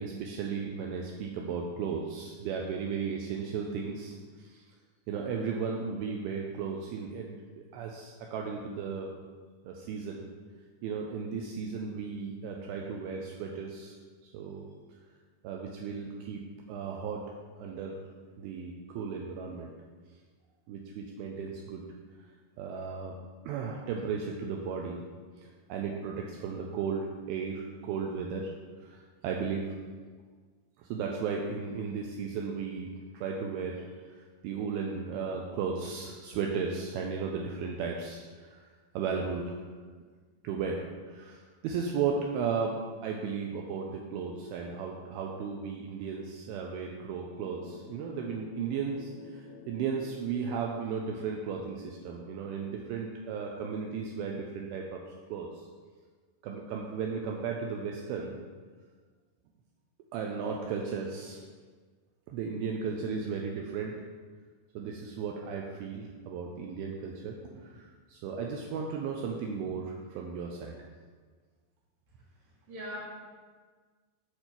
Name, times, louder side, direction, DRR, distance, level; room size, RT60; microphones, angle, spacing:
voice 1, 0.0-4.6 5.1-9.1 9.7-10.2 10.8-14.0 14.2-14.7 15.4-17.3 17.6-18.0 18.4-19.7 20.7-21.8 22.6-23.1 23.5-25.0 25.4-28.5 28.8-29.7 30.8-34.2 34.4-38.6 38.9-39.6 40.4-42.8 43.0-55.0 55.3-55.6 56.4-58.4 60.1-61.4 62.3-64.0 64.8-70.8, right 5 dB, 85° right, 1 dB, 2.1 m, -35 dB
sound 1, 47.4-53.6, left 4 dB, 85° left, 2.6 m, -52 dB
voice 2, 72.4-73.0, equal, 45° right, -6 dB, 1.9 m, -41 dB
6.8 x 4.4 x 5.9 m, 1.5 s
omnidirectional pair, 4.9 m